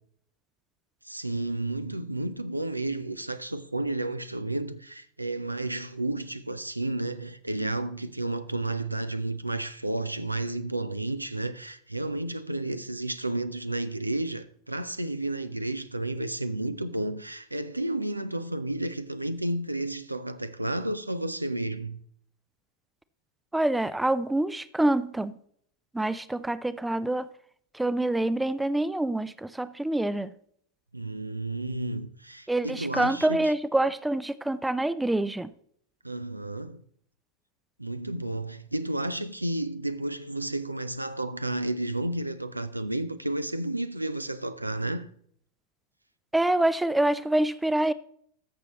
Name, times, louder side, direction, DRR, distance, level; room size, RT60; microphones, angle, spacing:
voice 1, 1.0-22.0 30.9-33.5 36.0-36.8 37.8-45.1, right 2 dB, 85° right, 0.5 m, -32 dB
voice 2, 23.5-25.3 25.9-27.3 27.7-30.3 32.5-35.5 46.3-47.9, right 1 dB, 5° right, 0.4 m, -26 dB
13.5 x 6.8 x 3.0 m
figure-of-eight pair, 90°, 0 cm